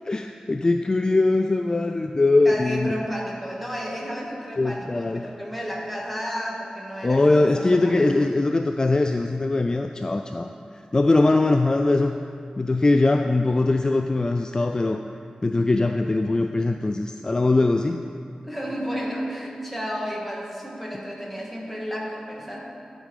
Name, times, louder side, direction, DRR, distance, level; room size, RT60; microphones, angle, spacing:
voice 1, 0.1-2.9 4.6-5.3 7.0-12.2 12.6-15.0 15.4-18.0, left 2 dB, 30° left, 6 dB, 0.3 m, -21 dB
voice 2, 2.4-7.9 18.4-22.6, equal, ahead, -3 dB, 1.8 m, -32 dB
12.5 x 5.1 x 4.9 m, 2.4 s
wide cardioid pair, 75°, 2 cm